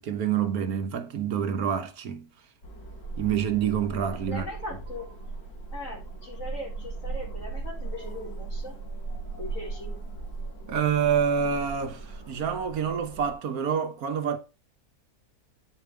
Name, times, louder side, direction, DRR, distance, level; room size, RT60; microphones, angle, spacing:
voice 1, 0.0-2.3 3.2-4.4 10.7-14.4, right 7 dB, 70° right, 1.4 m, -27 dB
sound 1, 2.6-13.4, right 3 dB, 75° left, 6.0 m, -38 dB
voice 2, 4.3-5.1 5.7-8.7 9.4-10.0, left 1 dB, 55° left, 4.3 m, -39 dB
8.5 x 5.2 x 4.6 m
omnidirectional pair, 1.6 m